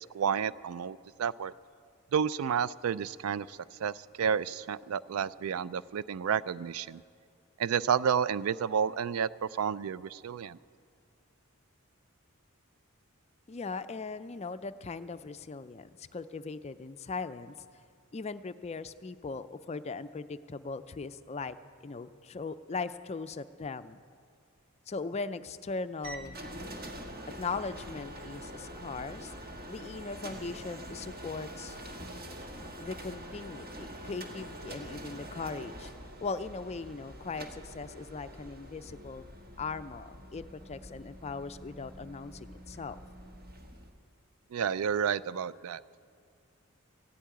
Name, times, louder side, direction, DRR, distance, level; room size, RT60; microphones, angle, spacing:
voice 1, 0.1-1.5 2.1-7.0 7.6-10.6 44.5-45.8, right 7 dB, 80° right, 18 dB, 0.4 m, -31 dB
voice 2, 13.5-17.5 18.1-21.6 21.8-24.0 24.9-26.4 27.4-31.8 32.8-35.9 36.2-39.2 39.6-43.0, left 4 dB, 30° left, 12 dB, 0.4 m, -39 dB
sound 1, 26.0-43.9, equal, 45° right, 1.4 m, -45 dB
15.0 x 8.5 x 9.2 m, 2.2 s
head